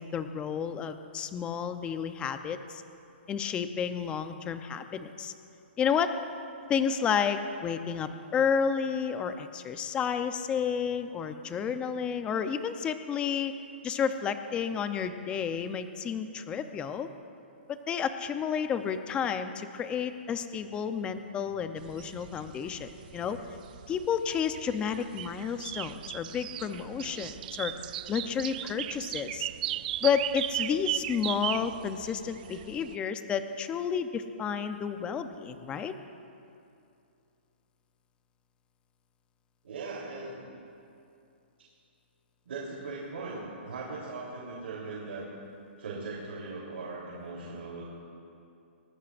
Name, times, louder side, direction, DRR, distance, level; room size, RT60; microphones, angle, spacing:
voice 1, 0.0-2.8 3.3-5.3 5.8-6.2 6.7-13.5 13.8-17.1 17.7-23.4 23.9-27.7 28.1-29.5 30.0-35.9, left 7 dB, 15° left, 9 dB, 0.7 m, -31 dB
sound 1, 21.8-33.0, right 13 dB, 45° right, 0.4 m, -37 dB
voice 2, 39.6-40.5 42.5-45.3 45.8-47.8, right 3 dB, 75° right, -5 dB, 3.6 m, -39 dB
24.5 x 19.0 x 2.6 m, 2.6 s
hypercardioid pair, 150°, 6 cm